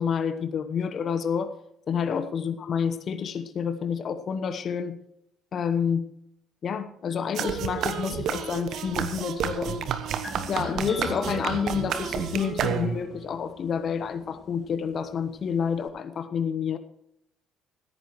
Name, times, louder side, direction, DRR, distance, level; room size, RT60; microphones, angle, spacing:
voice 1, 0.0-1.5 1.9-5.0 5.5-6.1 6.6-9.9 10.5-16.8, left 7 dB, 50° left, 11 dB, 1.1 m, -29 dB
sound 1, 7.4-13.2, right 8 dB, 55° right, 1.2 m, -30 dB
sound 2, 10.2-15.9, left 1 dB, 20° left, 2.6 m, -42 dB
15.5 x 13.5 x 3.1 m, 0.76 s
hypercardioid pair, 50°, 0 cm